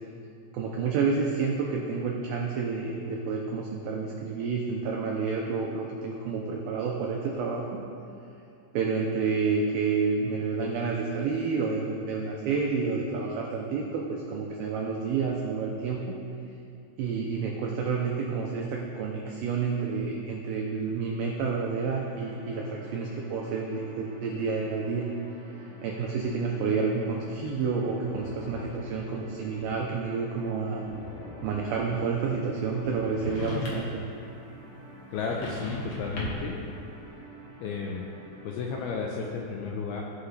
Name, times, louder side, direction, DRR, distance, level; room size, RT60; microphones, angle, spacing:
voice 1, 0.5-7.8 8.7-16.2 17.0-25.1 25.8-30.8 31.4-33.9, right 5 dB, 85° right, -1 dB, 2.0 m, -29 dB
sound 1, 21.8-39.0, right 1 dB, 60° right, 3.8 m, -50 dB
sound 2, 28.0-29.9 30.8-34.1, left 2 dB, 45° left, 2.5 m, -44 dB
sound 3, 33.1-34.0 35.1-36.6, left 1 dB, 60° left, 2.0 m, -35 dB
voice 2, 35.1-36.6 37.6-38.0 38.4-40.1, left 5 dB, 85° left, -1 dB, 2.3 m, -33 dB
16.5 x 5.7 x 3.3 m, 2.6 s
omnidirectional pair, 5.1 m